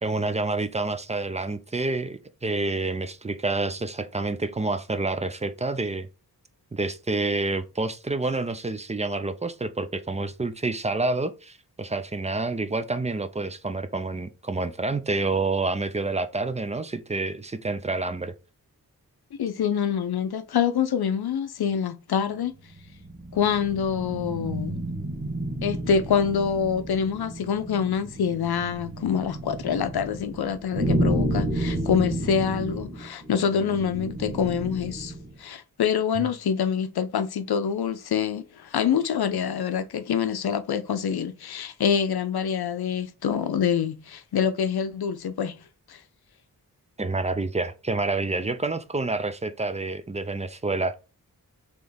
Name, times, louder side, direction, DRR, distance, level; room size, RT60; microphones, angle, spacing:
voice 1, 0.0-6.1 6.7-18.3 36.1-36.3 47.0-51.0, right 3 dB, 20° right, 0.3 m, -28 dB
voice 2, 19.4-22.5 23.3-24.8 25.6-45.6 45.9-46.0, left 7 dB, 90° left, 0.5 m, -26 dB
sound 1, 22.7-35.3, right 1 dB, 50° right, 1.4 m, -31 dB
3.4 x 3.0 x 3.8 m
wide cardioid pair, 90°, 37 cm